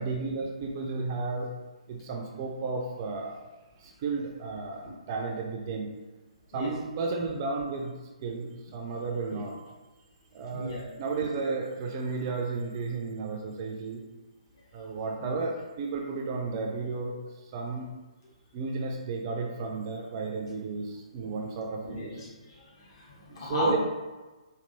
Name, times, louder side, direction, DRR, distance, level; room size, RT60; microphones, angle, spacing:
voice 1, 0.0-1.5 1.9-3.4 3.8-5.9 6.5-7.9 8.2-9.5 10.3-14.0 14.7-17.2 17.4-17.9 18.5-22.2 23.3-23.8, right 4 dB, 35° right, 1 dB, 0.5 m, -33 dB
voice 2, 10.5-10.9 15.2-15.4 21.8-23.8, left 2 dB, 45° left, -3 dB, 1.1 m, -34 dB
4.4 x 2.6 x 2.6 m, 1.2 s
figure-of-eight pair, 130°, 4 cm